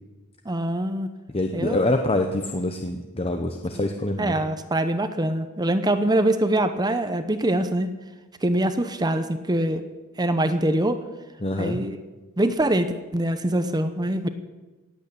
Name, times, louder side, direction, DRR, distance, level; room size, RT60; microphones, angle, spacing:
voice 1, 0.5-1.1 1.5-1.8 4.2-7.9 8.4-9.9 10.2-11.0 11.6-12.0 12.4-14.3, right 1 dB, 20° right, 9 dB, 0.8 m, -24 dB
voice 2, 1.3-4.3 11.4-11.8, left 1 dB, 25° left, 5 dB, 0.9 m, -25 dB
18.0 x 8.4 x 8.4 m, 1.2 s
head